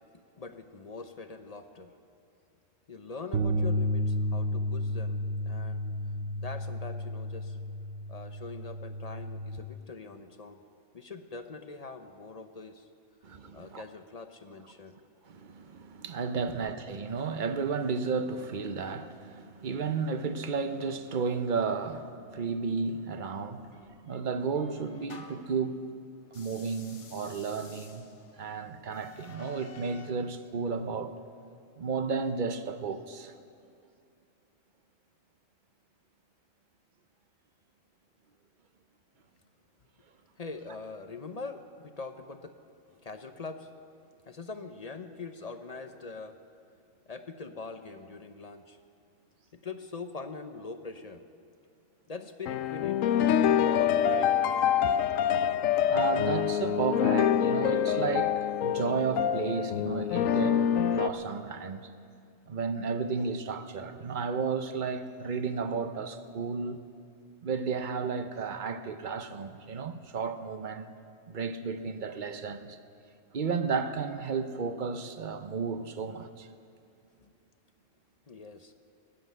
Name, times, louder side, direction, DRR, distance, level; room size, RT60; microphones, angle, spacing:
voice 1, 0.1-1.9 2.9-5.9 6.4-7.6 8.1-10.6 10.9-12.9 13.5-15.0 16.5-16.6 40.4-42.5 42.9-43.7 44.3-46.4 47.1-48.8 49.5-51.2 52.1-54.4 54.8-55.2 77.2-77.3 78.3-78.7, left 4 dB, 40° left, 0.7 m, -43 dB
sound 1, 3.3-9.6, equal, 70° right, 1.0 m, -32 dB
voice 2, 13.2-13.8 15.3-25.9 26.3-28.1 28.4-31.1 31.8-33.3 55.9-60.6 60.9-61.9 62.5-66.8 67.4-70.9 71.3-72.8 73.3-76.5, right 5 dB, 45° right, 0.8 m, -33 dB
sound 2, 23.7-25.6 26.3-30.2, left 4 dB, 65° left, 1.5 m, -52 dB
sound 3, 52.5-61.1, left 9 dB, 85° left, 1.0 m, -26 dB
19.5 x 7.7 x 9.2 m
omnidirectional pair, 1.4 m